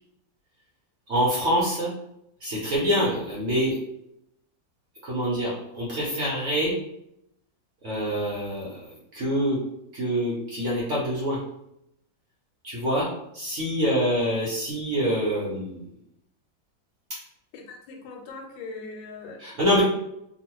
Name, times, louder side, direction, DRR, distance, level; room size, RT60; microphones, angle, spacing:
voice 1, 1.1-1.9 2.4-3.8 5.0-6.7 7.8-9.6 9.9-11.4 12.6-13.1 13.3-15.8 19.4-19.8, equal, 60° right, -6 dB, 0.8 m, -25 dB
voice 2, 17.5-19.8, left 3 dB, 85° left, 1 dB, 1.4 m, -41 dB
3.0 x 2.4 x 2.9 m, 0.79 s
omnidirectional pair, 2.0 m